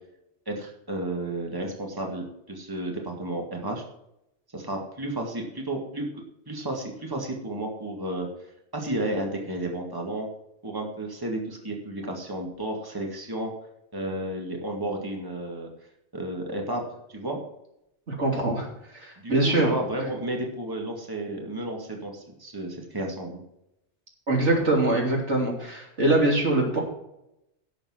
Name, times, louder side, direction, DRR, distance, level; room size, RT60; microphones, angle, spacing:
voice 1, 0.5-3.8 4.5-6.1 6.5-8.3 8.7-10.3 10.6-13.5 13.9-15.7 16.1-16.8 17.1-17.4 19.2-23.4, right 1 dB, 20° right, 1 dB, 2.0 m, -32 dB
voice 2, 18.1-18.7 18.9-19.7 24.3-26.8, right 2 dB, 80° right, -1 dB, 3.5 m, -23 dB
11.5 x 7.3 x 6.1 m, 0.81 s
omnidirectional pair, 1.2 m